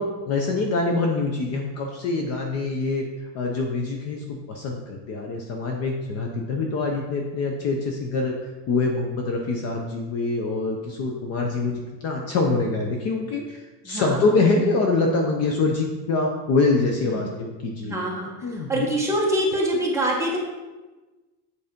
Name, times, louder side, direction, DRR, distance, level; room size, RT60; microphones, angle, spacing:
voice 1, 0.0-3.0 3.3-8.4 8.7-18.0 18.4-18.9, left 3 dB, 35° left, 2 dB, 0.6 m, -25 dB
voice 2, 13.8-14.2 17.1-17.2 17.8-20.4, right 1 dB, 5° right, -4 dB, 1.0 m, -25 dB
8.1 x 4.1 x 5.1 m, 1.2 s
cardioid pair, 170°, 47 cm